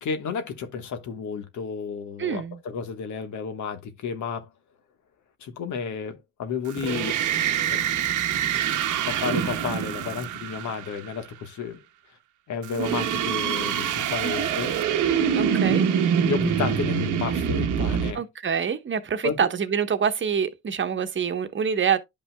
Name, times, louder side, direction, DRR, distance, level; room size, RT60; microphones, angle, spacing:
voice 1, 0.0-4.5 5.4-7.2 7.7-7.8 9.1-11.8 12.5-14.7 15.7-15.8 16.2-18.2 19.2-19.4, left 6 dB, 75° left, 1.3 m, -32 dB
voice 2, 2.2-2.6 14.2-14.5 15.3-15.9 18.1-22.0, right 7 dB, 40° right, 1.0 m, -26 dB
sound 1, 6.7-11.1 12.6-18.1, right 8 dB, 85° right, 1.0 m, -25 dB
11.0 x 5.4 x 2.2 m
cardioid pair, 90°, 30 cm